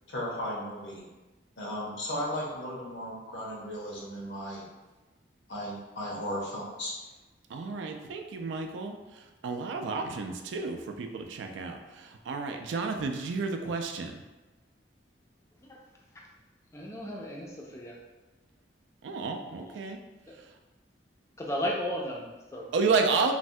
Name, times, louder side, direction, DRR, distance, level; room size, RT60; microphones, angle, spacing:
voice 1, 0.1-1.0 1.6-4.6 5.5-7.0, left 1 dB, 80° left, -4 dB, 0.8 m, -35 dB
voice 2, 7.5-9.0 9.4-14.1 19.0-20.0 22.7-23.3, right 4 dB, 80° right, 5 dB, 0.3 m, -31 dB
voice 3, 16.7-18.0 19.5-19.8 20.3-20.4 21.4-22.7, equal, 15° left, -2 dB, 0.4 m, -35 dB
3.2 x 2.1 x 2.6 m, 1.1 s
head